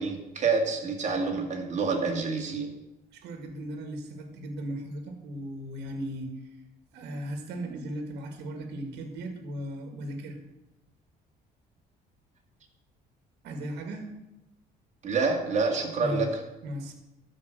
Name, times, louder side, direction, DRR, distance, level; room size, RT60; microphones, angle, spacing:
voice 1, 0.0-2.7 15.0-16.3, right 4 dB, 45° right, 2 dB, 2.4 m, -27 dB
voice 2, 3.1-6.3 6.9-10.4 13.4-14.1 16.0-16.3 16.6-16.9, right 1 dB, 80° right, 5 dB, 1.9 m, -36 dB
12.5 x 5.3 x 6.8 m, 0.94 s
cardioid pair, 110°, 17 cm